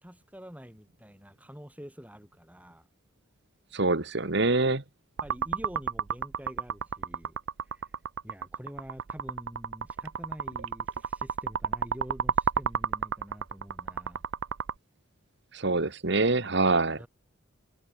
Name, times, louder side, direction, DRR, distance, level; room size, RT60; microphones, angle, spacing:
voice 1, 0.0-2.9 5.2-7.4 7.7-7.9 8.2-14.2 17.0-17.1, equal, 5° right, 5.0 m, -46 dB
voice 2, 3.7-4.8 15.5-17.0, right 3 dB, 60° right, 1.6 m, -25 dB
sound 1, 5.2-14.7, right 6 dB, 80° right, 0.6 m, -31 dB
head